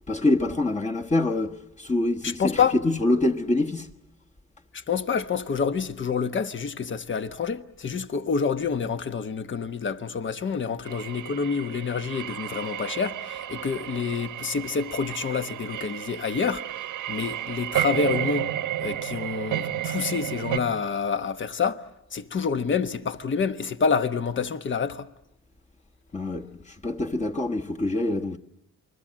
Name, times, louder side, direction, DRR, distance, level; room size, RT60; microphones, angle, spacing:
voice 1, 0.1-3.9 26.1-28.4, left 2 dB, 25° left, 1.4 m, -25 dB
voice 2, 2.2-2.7 4.7-16.6 17.1-18.5 18.8-21.8 22.1-25.1, left 6 dB, 40° left, 1.2 m, -27 dB
sound 1, 10.8-20.6, right 12 dB, 85° right, 1.4 m, -32 dB
28.5 x 21.0 x 7.6 m
cardioid pair, 90°, 30 cm